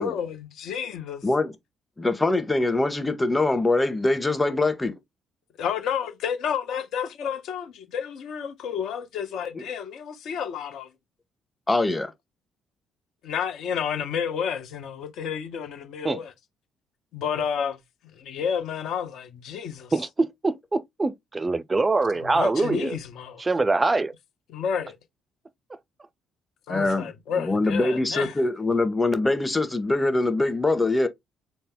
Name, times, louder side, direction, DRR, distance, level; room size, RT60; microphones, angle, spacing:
voice 1, 0.0-1.3 5.6-10.9 13.2-16.3 17.1-17.8 18.2-19.9 22.1-23.4 24.5-25.0 26.7-28.3, left 7 dB, 65° left, 0.8 m, -30 dB
voice 2, 1.2-1.5 2.0-4.9 9.5-9.6 11.7-12.1 26.7-31.1, left 2 dB, 15° left, 0.9 m, -23 dB
voice 3, 19.9-23.0 23.4-24.1, right 3 dB, 25° right, 0.4 m, -24 dB
4.1 x 2.0 x 3.6 m
hypercardioid pair, 45°, 0 cm